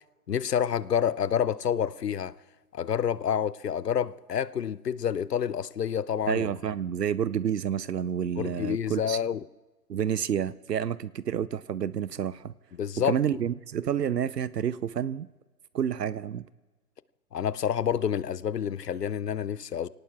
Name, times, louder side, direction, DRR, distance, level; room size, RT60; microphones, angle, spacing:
voice 1, 0.3-2.3 2.7-6.5 8.4-9.4 12.8-13.2 17.3-19.9, left 8 dB, 80° left, 0.7 m, -28 dB
voice 2, 6.3-9.2 9.9-12.5 13.0-15.3 15.7-16.4, right 9 dB, 85° right, 0.6 m, -29 dB
28.0 x 18.0 x 2.4 m
figure-of-eight pair, 120°, 48 cm